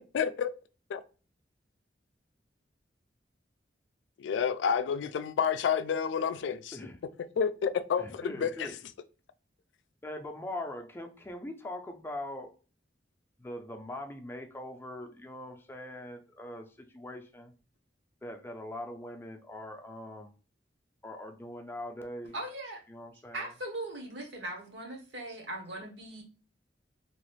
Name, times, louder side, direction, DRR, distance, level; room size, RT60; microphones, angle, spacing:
voice 1, 0.1-0.5 0.9-1.0 4.2-6.8 7.4-8.7, left 7 dB, 85° left, 0.3 m, -29 dB
voice 2, 8.0-8.7 10.0-12.5 13.4-17.5 18.2-20.3 21.0-22.4 22.9-23.5, left 1 dB, 15° left, 0.4 m, -42 dB
voice 3, 22.3-22.8 23.3-26.2, right 1 dB, 75° right, 1.0 m, -39 dB
3.0 x 2.4 x 3.1 m
head